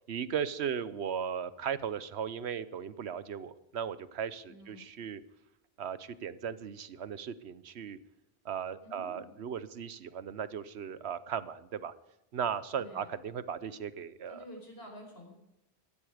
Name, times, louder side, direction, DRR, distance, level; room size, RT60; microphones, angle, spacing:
voice 1, 0.1-5.2 5.8-8.0 8.4-11.9 12.3-14.4, right 8 dB, 80° right, 15 dB, 1.1 m, -37 dB
voice 2, 4.5-4.8 8.8-9.3 12.7-13.1 14.3-15.4, left 1 dB, 65° left, 2 dB, 5.0 m, -49 dB
15.5 x 15.0 x 5.0 m, 0.88 s
omnidirectional pair, 1.1 m